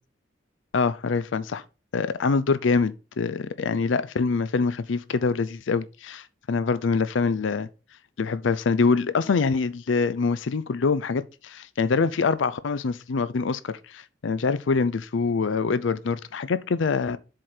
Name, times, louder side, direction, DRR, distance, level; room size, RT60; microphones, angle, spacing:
voice 1, 0.7-1.6 1.9-7.7 8.2-17.2, left 4 dB, 75° left, 0.5 m, -25 dB
7.5 x 4.4 x 4.9 m
head